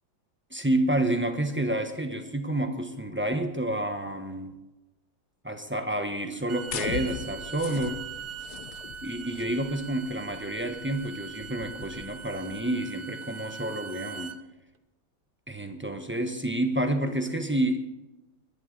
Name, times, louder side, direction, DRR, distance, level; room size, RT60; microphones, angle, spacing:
voice 1, 0.5-4.5 5.4-8.0 9.0-14.4 15.5-17.8, right 1 dB, 10° right, 6 dB, 0.8 m, -29 dB
Bowed string instrument, 6.3-14.4, right 7 dB, 70° right, 0.5 m, -42 dB
sound 1, 6.7-12.7, left 8 dB, 65° left, 1.3 m, -40 dB
21.0 x 11.0 x 4.0 m, 1.0 s
omnidirectional pair, 2.0 m